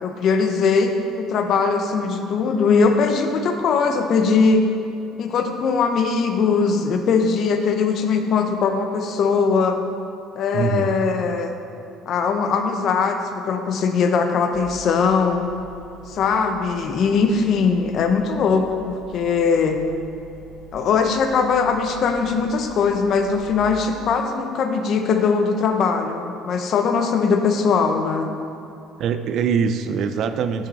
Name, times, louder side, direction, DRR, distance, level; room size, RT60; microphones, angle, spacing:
voice 1, 0.0-4.7 5.2-9.8 10.4-11.5 12.1-15.5 16.1-19.8 20.7-28.3, left 5 dB, 45° left, 6 dB, 0.6 m, -20 dB
voice 2, 10.5-11.0 29.0-30.7, right 6 dB, 50° right, 10 dB, 0.4 m, -23 dB
sound 1, 14.5-23.5, right 3 dB, 75° right, 1.2 m, -45 dB
8.6 x 5.4 x 4.1 m, 2.6 s
cardioid pair, 155°, 0 cm